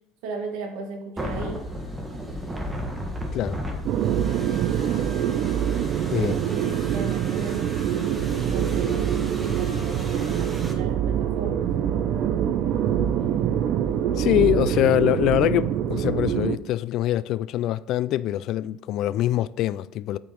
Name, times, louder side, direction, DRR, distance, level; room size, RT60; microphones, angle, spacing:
voice 1, 0.2-1.7 6.1-7.7 8.3-11.7, right 3 dB, 80° right, 2.0 m, -36 dB
sound 1, 1.2-10.7, equal, 15° right, 1.6 m, -36 dB
sound 2, 3.8-16.6, right 9 dB, 55° right, 0.6 m, -25 dB
voice 2, 14.2-20.2, left 13 dB, 60° left, 0.3 m, -24 dB
8.9 x 5.1 x 4.6 m
supercardioid pair, 115°, 0 cm